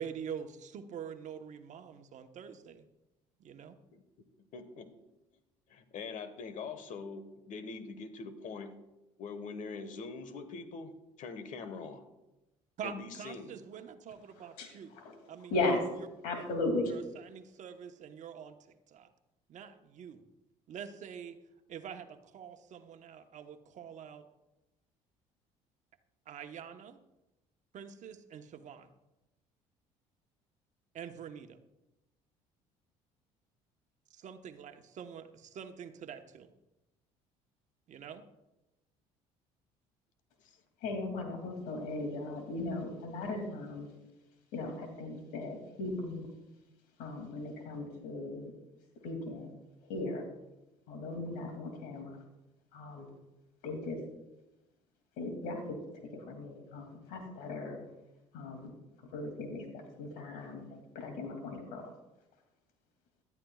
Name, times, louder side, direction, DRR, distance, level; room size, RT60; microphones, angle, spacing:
voice 1, 0.0-2.9 3.4-3.8 12.8-14.9 15.3-15.8 16.9-18.6 18.9-19.1 19.5-20.2 20.7-21.4 21.7-24.2 26.3-27.0 27.7-28.9 30.9-31.6 34.1-36.5 37.9-38.2, right 8 dB, 55° right, 7 dB, 1.1 m, -45 dB
voice 2, 4.5-4.9 5.7-8.7 9.2-12.0 12.8-13.6 40.4-40.6, left 4 dB, 60° left, 10 dB, 1.4 m, -43 dB
voice 3, 14.6-15.1 15.5-15.8 16.2-16.9 40.8-43.9 44.5-46.3 47.0-48.5 49.0-49.5 49.9-50.3 50.9-52.2 52.7-53.1 53.6-54.0 55.2-55.8 56.1-57.8 58.3-58.7 59.1-61.9, left 2 dB, 75° left, 4 dB, 2.6 m, -37 dB
17.0 x 12.0 x 2.4 m, 0.98 s
supercardioid pair, 80°, 15 cm